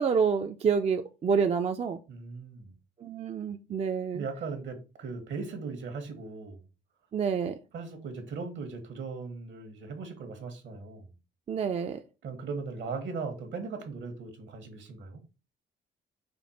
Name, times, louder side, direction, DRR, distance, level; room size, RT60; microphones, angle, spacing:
voice 1, 0.0-2.0 3.0-4.2 7.1-7.6 11.5-12.0, right 6 dB, 35° right, 0.4 m, -28 dB
voice 2, 2.1-2.7 4.1-6.6 7.7-11.1 12.2-15.2, right 4 dB, 70° right, 1.2 m, -38 dB
5.1 x 2.3 x 4.1 m
cardioid pair, 90°, 20 cm